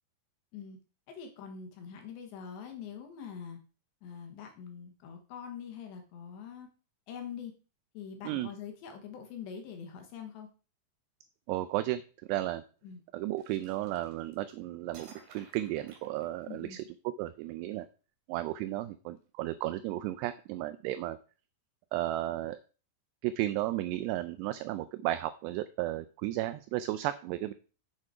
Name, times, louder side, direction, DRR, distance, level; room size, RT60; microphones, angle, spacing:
voice 1, 1.1-3.6 4.0-6.7 7.1-7.5 7.9-10.5 12.8-13.0 16.5-16.8, left 7 dB, 80° left, 4 dB, 3.3 m, -44 dB
voice 2, 11.5-12.0 12.3-12.6 13.1-16.8 17.2-17.9 18.3-21.2 21.9-22.6 23.2-27.5, right 15 dB, 85° right, 12 dB, 2.5 m, -34 dB
sound 1, 13.4-14.5 14.9-16.8, right 4 dB, 55° right, 3.1 m, -55 dB
7.4 x 6.6 x 4.9 m, 0.36 s
omnidirectional pair, 5.2 m